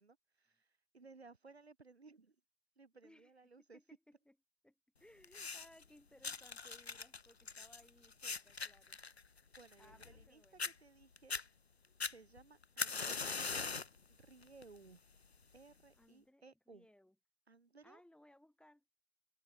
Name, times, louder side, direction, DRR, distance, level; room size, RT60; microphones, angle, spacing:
voice 1, 0.0-2.4 2.8-3.8 9.6-11.4 12.1-13.3 14.1-15.0 15.5-16.9 17.5-18.0, right 4 dB, 85° right, 3.5 m, -60 dB
voice 2, 3.7-4.4 4.6-9.0 9.8-10.7 16.0-17.1 17.8-18.8, left 1 dB, 5° left, 4.6 m, -64 dB
sound 1, 5.2-5.8 6.2-10.3 10.6-10.7 11.2-11.4 12.0-14.0 14.4-14.8 15.6-15.7, left 4 dB, 90° left, 1.0 m, -41 dB
figure-of-eight pair, 90°, 31 cm